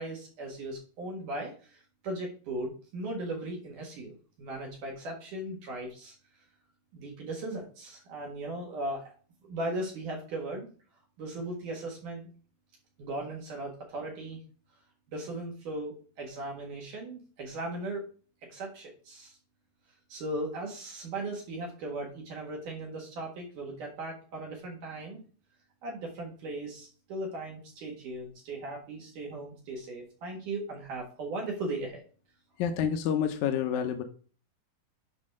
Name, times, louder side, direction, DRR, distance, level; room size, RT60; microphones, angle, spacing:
voice 1, 0.0-6.1 6.9-9.1 9.4-10.7 11.2-12.3 13.0-14.4 15.1-18.0 18.5-19.4 20.1-25.2 25.8-32.0, right 2 dB, 65° right, -1 dB, 3.2 m, -37 dB
voice 2, 32.6-34.0, left 8 dB, 75° left, 6 dB, 1.9 m, -28 dB
9.6 x 4.2 x 6.2 m, 0.40 s
omnidirectional pair, 4.2 m